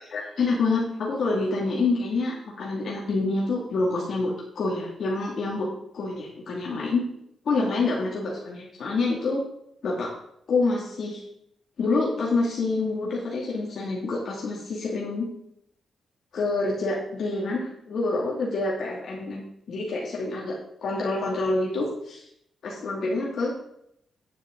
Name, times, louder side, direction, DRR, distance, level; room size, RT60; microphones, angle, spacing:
voice 1, 0.0-5.7 5.9-7.0 7.4-9.4 9.8-10.1 10.5-11.2 11.8-15.2 16.3-20.6 20.8-22.2 22.6-23.5, left 3 dB, 60° left, -4 dB, 2.5 m, -27 dB
9.9 x 9.6 x 3.9 m, 0.74 s
wide cardioid pair, 135°, 0 cm